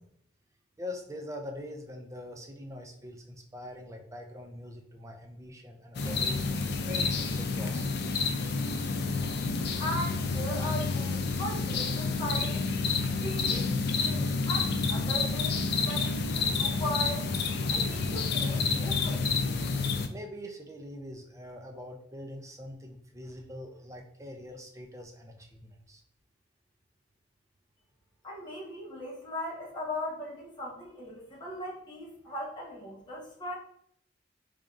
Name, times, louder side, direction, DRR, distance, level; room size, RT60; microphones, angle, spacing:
voice 1, 0.8-7.9 20.1-26.0, left 1 dB, 15° right, 3 dB, 0.5 m, -43 dB
sound 1, 5.9-20.1, left 4 dB, 60° left, 0.4 m, -29 dB
voice 2, 9.8-12.6 13.2-17.3 17.7-19.2 28.2-33.6, left 1 dB, 25° left, -5 dB, 1.3 m, -38 dB
4.0 x 3.4 x 2.5 m, 0.68 s
head